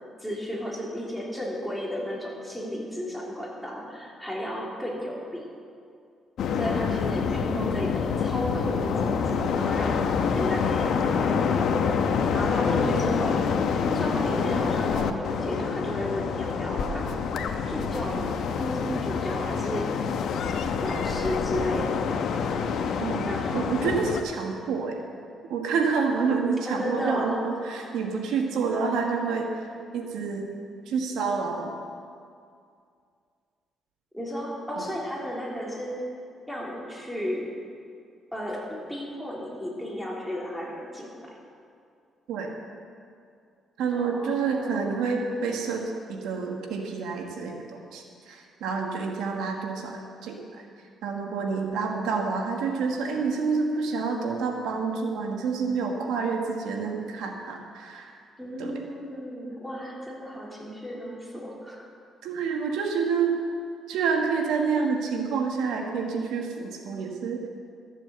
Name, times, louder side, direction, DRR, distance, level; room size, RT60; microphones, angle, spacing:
voice 1, 0.2-5.5 6.5-19.9 20.8-22.1 23.3-23.8 26.7-27.4 34.1-36.1 36.5-37.5 38.3-41.4 43.9-45.2 58.4-61.9, equal, ahead, -4 dB, 3.2 m, -33 dB
sound 1, 6.4-24.2, left 6 dB, 70° left, 0.9 m, -27 dB
voice 2, 23.0-25.0 25.5-29.5 29.9-30.5 30.9-31.7 42.3-42.5 43.8-45.8 46.1-50.6 51.0-58.2 58.6-58.7 62.2-63.4 63.9-67.4, right 5 dB, 85° right, 2 dB, 1.4 m, -28 dB
13.5 x 7.3 x 7.8 m, 2.3 s
cardioid pair, 90°, 0 cm